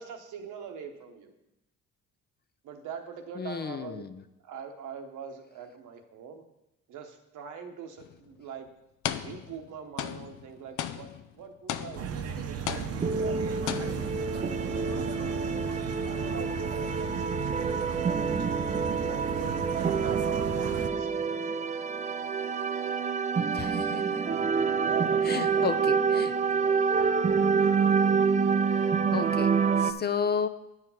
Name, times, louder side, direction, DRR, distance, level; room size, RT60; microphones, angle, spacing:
voice 1, 0.0-1.3 2.6-4.1 4.4-6.4 6.9-8.7 9.2-11.1 11.3-15.7 16.0-18.6 19.0-20.4 20.7-21.5 24.8-27.0 27.6-27.7, right 6 dB, 80° right, 4 dB, 1.1 m, -43 dB
voice 2, 3.4-4.2 23.5-24.2 25.2-26.3 28.7-30.5, left 6 dB, 35° left, 11 dB, 0.5 m, -33 dB
sound 1, 8.0-8.2 9.0-9.7 10.0-12.3 12.7-13.4 13.7-14.2, left 10 dB, 80° left, 0.5 m, -36 dB
sound 2, 12.0-20.9, right 7 dB, 55° right, 0.8 m, -35 dB
sound 3, 13.0-29.9, right 5 dB, 25° right, 0.5 m, -27 dB
9.2 x 4.8 x 5.6 m, 0.89 s
cardioid pair, 90°, 30 cm